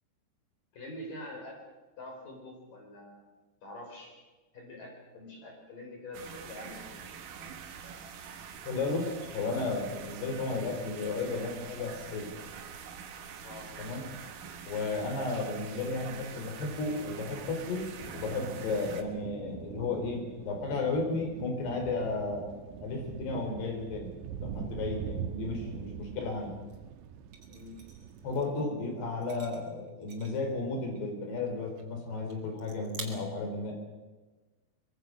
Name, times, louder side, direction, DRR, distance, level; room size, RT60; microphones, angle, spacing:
voice 1, 0.7-1.6 2.0-3.3 3.6-4.2 4.5-7.1 13.4-13.7 27.5-27.8, left 1 dB, 50° left, 1 dB, 5.8 m, -45 dB
sound 1, 6.1-19.0, right 7 dB, 60° right, 2.8 m, -45 dB
voice 2, 8.7-12.3 13.8-14.1 14.7-24.1 24.4-26.5 28.2-33.7, left 3 dB, 70° left, 3 dB, 5.8 m, -34 dB
sound 2, 18.0-28.4, right 8 dB, 85° right, 3.2 m, -43 dB
sound 3, 26.7-26.8 27.3-28.5 29.1-30.6 30.9-31.1 31.5-31.9 32.3-32.4 32.6-33.0, right 5 dB, 35° right, 3.2 m, -48 dB
24.5 x 23.0 x 6.3 m, 1.2 s
omnidirectional pair, 5.0 m